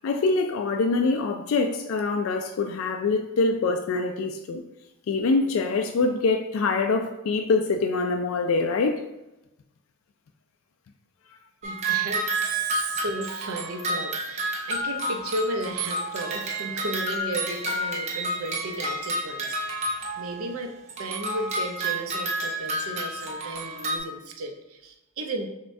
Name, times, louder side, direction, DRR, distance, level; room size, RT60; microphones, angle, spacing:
voice 1, 0.0-4.6 5.1-9.0, left 3 dB, 70° left, 0.3 m, -24 dB
sound 1, 11.6-20.5 20.9-24.0, right 1 dB, 30° right, 0.6 m, -30 dB
voice 2, 11.6-25.5, right 2 dB, 80° right, 0.6 m, -34 dB
6.3 x 2.2 x 2.6 m
head